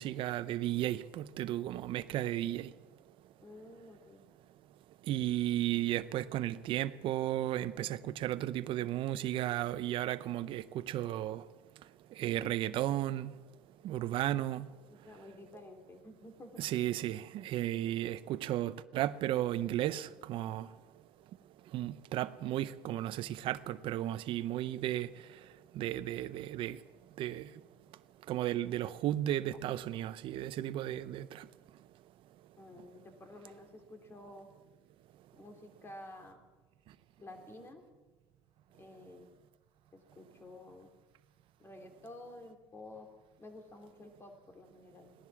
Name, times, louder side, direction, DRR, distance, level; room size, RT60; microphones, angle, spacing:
voice 1, 0.0-2.7 5.1-11.4 12.2-13.3 13.8-14.7 16.6-20.7 21.7-25.1 25.7-26.8 27.2-27.5 28.3-31.5, right 13 dB, 55° right, 0.7 m, -34 dB
voice 2, 3.4-4.2 14.9-16.7 32.5-34.5 35.3-36.4 37.2-37.8 38.8-39.3 39.9-40.9 41.6-43.1 43.4-45.1, left 2 dB, 25° left, 2.8 m, -51 dB
17.5 x 10.5 x 7.2 m
supercardioid pair, 100°, 11 cm